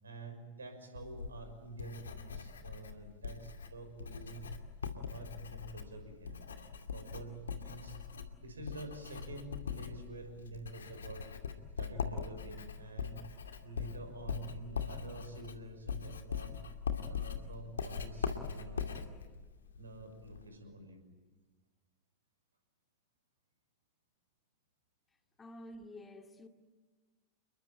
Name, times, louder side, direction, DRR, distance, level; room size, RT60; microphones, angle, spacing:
voice 1, 0.0-4.5 4.9-6.4 6.9-8.0 8.4-11.2 11.8-13.2 13.6-16.6 17.0-19.1 19.8-21.0, right 2 dB, 75° right, 6.0 m, -48 dB
Writing, 1.0-20.5, left 6 dB, 70° left, 2.3 m, -42 dB
voice 2, 25.4-26.5, left 1 dB, 15° left, 2.4 m, -50 dB
29.5 x 22.0 x 9.2 m
figure-of-eight pair, 90°, 0 cm